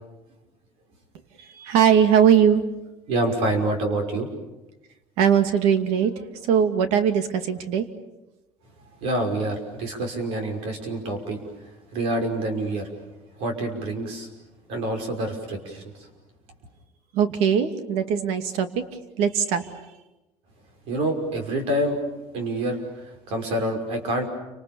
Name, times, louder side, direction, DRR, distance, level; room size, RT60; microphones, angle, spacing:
voice 1, 1.5-2.6 5.2-7.9 17.1-18.8 19.2-19.7, right 8 dB, 90° right, 8 dB, 2.4 m, -20 dB
voice 2, 3.1-4.3 9.0-11.5 11.9-12.9 13.4-14.3 14.7-15.8 20.9-22.0 22.3-22.8 23.0-24.3, right 1 dB, 65° right, 4 dB, 5.8 m, -27 dB
30.0 x 26.5 x 7.2 m, 1.0 s
cardioid pair, 175°, 11 cm